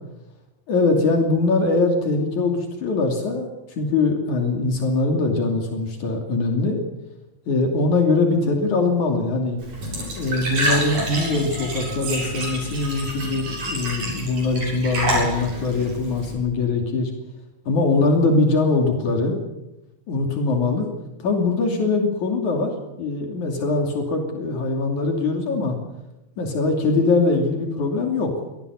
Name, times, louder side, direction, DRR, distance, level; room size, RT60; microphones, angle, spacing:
voice 1, 0.7-3.5 3.8-6.8 7.5-9.6 10.2-17.1 17.7-19.4 20.1-20.9 21.2-25.8 26.4-28.3, left 3 dB, 80° left, 3 dB, 4.3 m, -22 dB
Glass / Trickle dribble / Fill (with liquid), 9.6-16.3, equal, 80° right, 9.1 m, -28 dB
25.0 x 17.5 x 8.3 m, 0.93 s
omnidirectional pair, 3.4 m